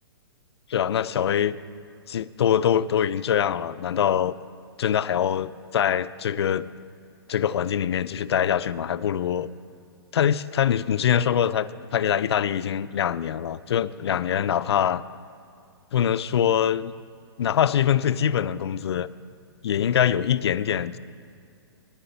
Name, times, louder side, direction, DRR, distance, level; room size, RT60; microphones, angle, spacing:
voice 1, 0.7-1.6 2.1-4.4 4.8-6.7 7.3-9.5 10.1-15.0 15.9-16.9 17.4-19.1 19.6-21.0, left 9 dB, 80° left, 15 dB, 0.4 m, -23 dB
9.6 x 8.4 x 6.8 m, 2.4 s
hypercardioid pair, 135°, 13 cm